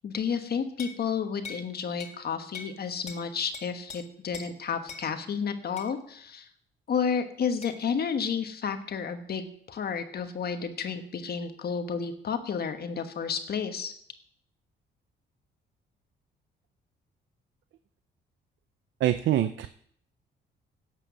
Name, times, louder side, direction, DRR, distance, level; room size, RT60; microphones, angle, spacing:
voice 1, 0.0-6.5 6.9-13.9, left 6 dB, 50° left, 8 dB, 1.3 m, -31 dB
sound 1, 0.8-1.0 1.4-1.7 2.0-2.2 2.5-2.8 3.1-3.2 3.5-4.0 4.3-4.5 4.9-5.1 5.8-5.9 7.6-7.8, left 4 dB, 35° left, 1.9 m, -42 dB
voice 2, 19.0-19.7, right 12 dB, 70° right, 11 dB, 0.6 m, -24 dB
11.0 x 7.6 x 6.1 m, 0.65 s
cardioid pair, 90°, 20 cm